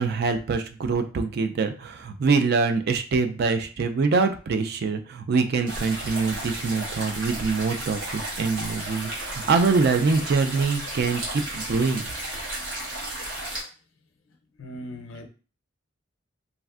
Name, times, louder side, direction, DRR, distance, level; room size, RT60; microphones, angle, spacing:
voice 1, 0.0-12.0, right 4 dB, 55° right, 7 dB, 0.3 m, -24 dB
sound 1, 5.7-13.6, right 1 dB, 80° right, 1.2 m, -33 dB
voice 2, 14.6-15.3, equal, 80° left, 4 dB, 0.5 m, -39 dB
3.2 x 2.5 x 2.4 m, 0.37 s
head